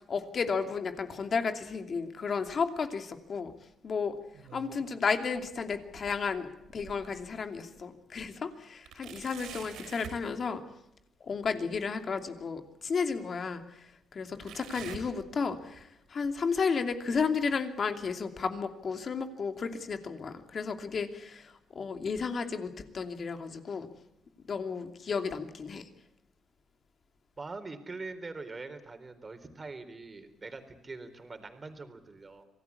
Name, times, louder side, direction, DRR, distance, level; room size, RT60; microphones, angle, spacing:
voice 1, 0.1-3.5 3.8-4.2 4.5-10.6 11.2-23.9 24.5-25.9, left 5 dB, 50° left, 7 dB, 2.7 m, -33 dB
sound 1, 4.1-5.0 5.4-7.3 7.8-7.9 8.8-10.2 11.9-12.0 13.0-13.1 14.4-15.8 16.2-16.5 17.2-17.3 18.2-18.3, right 7 dB, 85° right, 6.3 m, -48 dB
voice 2, 27.4-32.4, right 3 dB, 30° right, 8 dB, 3.9 m, -43 dB
26.0 x 18.0 x 8.5 m, 0.82 s
cardioid pair, 90°, 0 cm